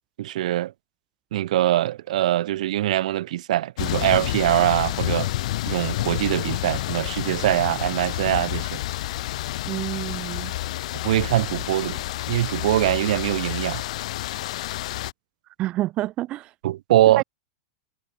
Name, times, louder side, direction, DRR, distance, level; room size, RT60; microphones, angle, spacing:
voice 1, 0.2-0.7 1.3-5.3 5.7-8.8 11.0-12.0 12.3-13.8 16.6-17.2, right 14 dB, 60° right, 1.3 m, -23 dB
sound 1, 3.8-15.1, left 15 dB, 55° left, 5.4 m, -29 dB
voice 2, 9.7-10.5 15.6-16.5 17.2-17.3, right 15 dB, 25° right, 0.8 m, -28 dB
supercardioid pair, 170°, 4 cm